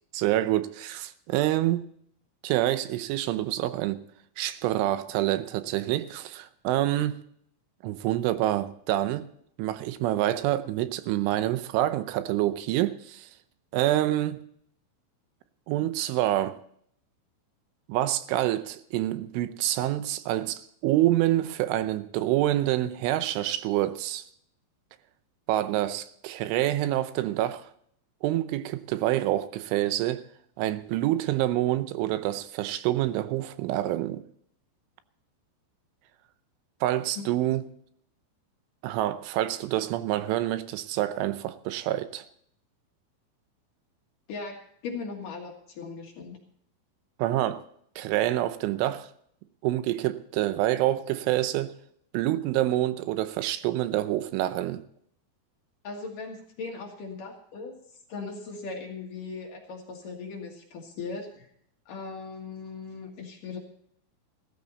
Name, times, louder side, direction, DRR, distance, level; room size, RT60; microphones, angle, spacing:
voice 1, 0.1-1.9 2.4-4.0 4.4-7.2 7.8-9.3 9.6-13.3 13.7-14.4 15.7-16.6 17.9-24.3 25.5-27.7 28.2-30.2 30.6-34.2 36.8-37.6 38.8-42.2 47.2-47.6 48.0-49.1 49.6-51.7 52.1-54.8, right 14 dB, 80° right, 3.2 m, -27 dB
voice 2, 44.3-46.4 55.8-57.8 58.1-61.5 61.9-63.6, left 4 dB, 55° left, 2.7 m, -38 dB
16.0 x 14.0 x 4.1 m
omnidirectional pair, 5.6 m